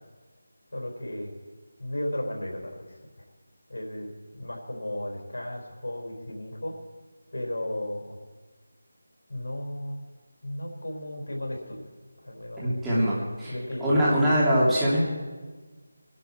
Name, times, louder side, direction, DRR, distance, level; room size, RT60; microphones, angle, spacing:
voice 1, 0.7-1.3 1.8-3.3 3.7-6.7 7.3-8.2 9.3-10.0 10.4-11.9 12.2-12.7 13.5-14.1, left 1 dB, 80° left, 1 dB, 4.7 m, -35 dB
voice 2, 12.6-13.5 13.8-15.0, equal, 5° right, -10 dB, 2.9 m, -22 dB
21.0 x 11.5 x 4.5 m, 1.3 s
figure-of-eight pair, 175°, 0 cm